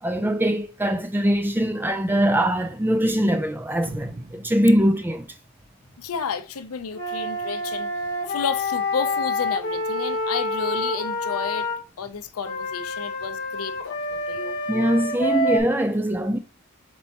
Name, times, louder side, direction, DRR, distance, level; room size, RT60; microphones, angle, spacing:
voice 1, 0.0-5.3 14.7-16.4, equal, 10° right, 0.3 m, -22 dB
sound 1, 3.8-6.3, right 1 dB, 50° right, 0.6 m, -40 dB
voice 2, 6.0-7.9 8.3-11.7 12.0-14.6, left 6 dB, 85° left, 0.5 m, -31 dB
Wind instrument woodwind instrument, 6.9-11.8 12.4-15.6, left 2 dB, 50° left, 1.0 m, -27 dB
4.5 x 4.1 x 2.8 m
head